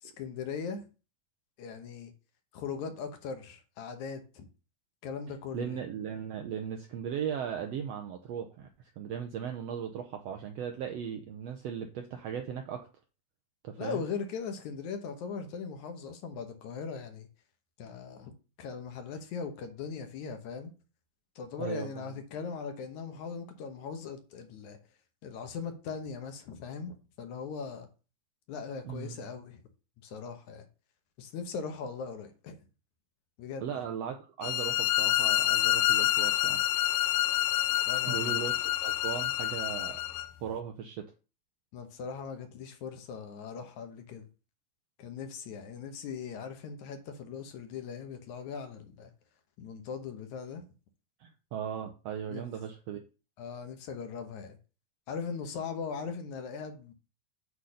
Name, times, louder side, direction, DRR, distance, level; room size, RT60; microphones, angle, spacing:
voice 1, 0.0-0.8 1.6-2.1 2.5-4.5 5.0-5.8 13.8-17.3 17.8-18.3 18.6-20.7 21.4-24.8 25.2-27.9 28.5-29.6 30.0-30.7 31.2-32.6 33.4-33.6 37.9-38.4 41.7-44.3 45.0-49.1 49.6-50.6 52.3-52.5 53.4-54.6 55.1-56.9, left 5 dB, 70° left, 2.3 m, -39 dB
voice 2, 5.5-8.7 9.0-12.9 13.6-14.1 21.6-22.0 28.8-29.2 33.6-36.6 38.0-40.0 40.4-41.1 51.2-53.0, right 8 dB, 75° right, 1.5 m, -37 dB
sound 1, 34.4-40.3, left 14 dB, 85° left, 2.2 m, -27 dB
8.4 x 3.9 x 6.4 m
omnidirectional pair, 3.7 m